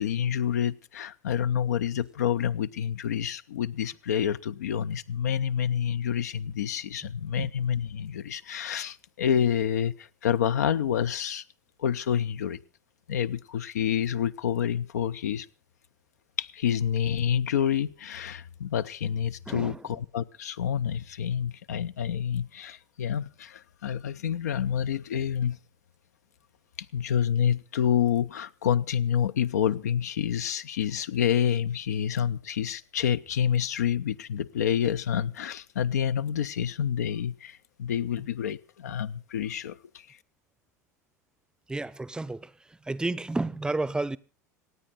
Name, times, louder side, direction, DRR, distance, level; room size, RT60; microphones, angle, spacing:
voice 1, 0.0-11.4 11.8-12.6 13.1-15.5 16.4-25.6 26.9-40.2, left 9 dB, 70° left, 0.6 m, -28 dB
voice 2, 19.5-19.8 41.7-44.2, right 2 dB, 10° right, 0.6 m, -31 dB
26.5 x 9.3 x 4.0 m
figure-of-eight pair, 75°, 9 cm